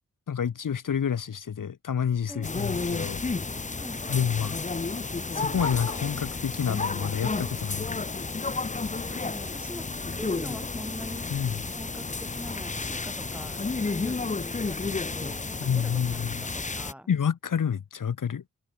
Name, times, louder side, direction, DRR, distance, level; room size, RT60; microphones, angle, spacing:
voice 1, 0.3-3.2 4.1-4.6 5.3-8.0 11.3-11.6 15.6-16.3 17.1-18.4, left 7 dB, 80° left, 1.3 m, -28 dB
voice 2, 2.3-2.8 3.8-4.3 9.1-11.3 11.7-17.1, equal, 5° right, 5.2 m, -43 dB
sound 1, 2.4-16.9, left 3 dB, 25° left, 0.7 m, -32 dB
cardioid pair, 40°, 32 cm